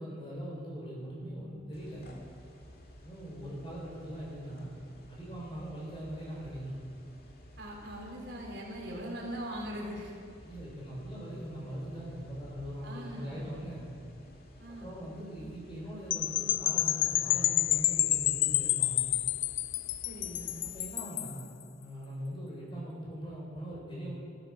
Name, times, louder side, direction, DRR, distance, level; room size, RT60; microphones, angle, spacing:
voice 1, 0.0-2.1 3.0-4.7 5.1-6.8 10.4-13.9 14.7-19.0 20.7-21.5 21.7-24.2, equal, 25° left, -5 dB, 5.3 m, -41 dB
sound 1, 1.7-20.9, equal, 55° left, 2.0 m, -53 dB
voice 2, 7.6-10.1 12.8-13.6 14.6-15.0 20.0-20.6, equal, 70° right, -2 dB, 3.8 m, -41 dB
sound 2, 16.1-21.4, left 15 dB, 80° left, 0.4 m, -29 dB
15.5 x 12.5 x 6.4 m, 2.2 s
head